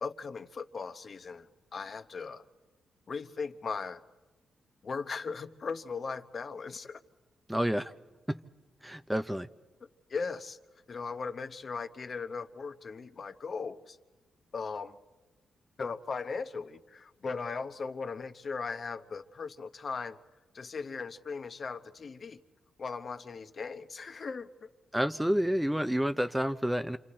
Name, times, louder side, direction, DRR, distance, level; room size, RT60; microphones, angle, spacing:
voice 1, 0.0-1.5 1.7-2.4 3.1-4.0 4.8-7.0 10.1-10.6 10.9-14.0 14.5-15.0 15.8-20.2 20.5-22.4 22.8-24.7, left 5 dB, 50° left, 9 dB, 0.9 m, -38 dB
voice 2, 7.5-7.9 8.3-8.4 8.8-9.5 24.9-27.0, equal, 5° right, 11 dB, 0.6 m, -29 dB
28.0 x 27.0 x 4.4 m, 1.3 s
cardioid pair, 80°, 0 cm